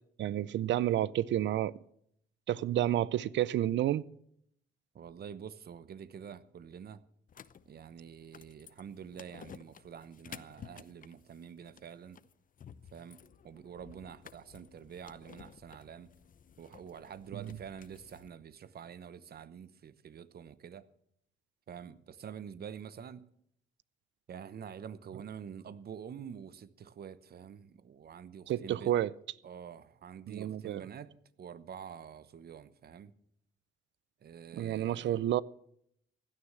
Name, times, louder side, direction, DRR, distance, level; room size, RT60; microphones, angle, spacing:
voice 1, 0.2-1.8 2.5-4.1 17.3-17.6 28.5-29.1 30.3-30.8 34.5-35.4, right 12 dB, 70° right, 0.5 m, -30 dB
voice 2, 4.9-7.0 7.7-12.2 12.9-16.1 16.6-20.9 21.7-23.2 24.3-29.0 29.4-31.1 31.4-33.1 34.2-35.2, right 8 dB, 50° right, 0.9 m, -47 dB
sound 1, 7.3-18.3, left 8 dB, 45° left, 0.7 m, -54 dB
16.0 x 9.9 x 7.4 m
cardioid pair, 90°, 20 cm